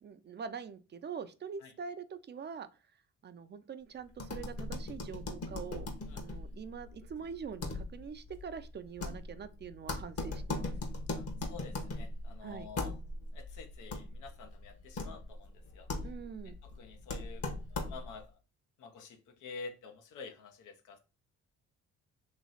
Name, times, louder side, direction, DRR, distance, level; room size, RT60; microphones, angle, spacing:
voice 1, 0.0-2.7 3.2-5.9 6.1-10.7 12.4-12.7 16.0-16.5, right 6 dB, 35° right, 0.4 m, -44 dB
sound 1, 4.1-18.3, left 2 dB, 50° left, 1.1 m, -40 dB
voice 2, 11.2-12.9 13.3-15.9 16.6-17.4 17.8-18.3 18.8-21.0, left 4 dB, 90° left, 0.8 m, -49 dB
3.1 x 3.0 x 3.9 m
cardioid pair, 90°, 30 cm